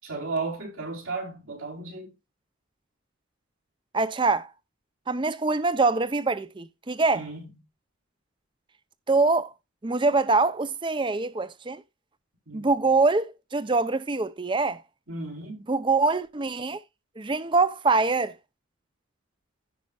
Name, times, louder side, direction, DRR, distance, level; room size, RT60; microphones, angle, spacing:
voice 1, 0.0-2.1 7.1-7.5 12.5-12.7 15.1-15.6, right 3 dB, 80° right, 4.4 m, -34 dB
voice 2, 3.9-4.5 5.1-7.2 9.1-9.5 9.8-11.8 12.5-14.8 15.7-16.8 17.2-18.3, right 3 dB, 25° right, 0.5 m, -24 dB
15.5 x 5.3 x 2.3 m
head